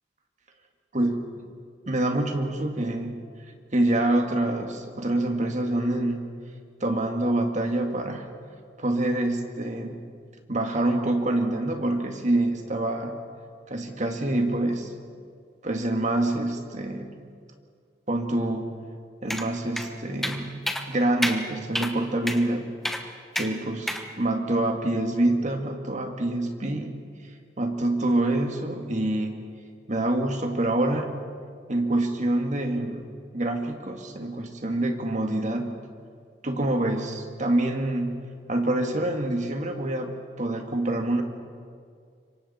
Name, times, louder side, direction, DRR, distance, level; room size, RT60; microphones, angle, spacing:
voice 1, 1.9-3.2 3.7-6.3 6.8-8.3 8.8-10.0 10.5-13.1 13.7-14.9 15.6-17.2 18.1-18.7 19.2-22.7 23.3-26.9 27.6-29.4 29.9-31.1 31.7-35.7 36.4-41.2, right 1 dB, 45° right, 4 dB, 2.0 m, -26 dB
sound 1, 19.3-19.5 19.8-19.9 20.2-20.4 20.7-20.8 21.2-21.4 21.7-21.9 22.3-22.4 22.8-23.0 23.3-23.5 23.9-24.0, equal, ahead, 1.1 m, -28 dB
26.5 x 24.0 x 4.3 m, 2.1 s
head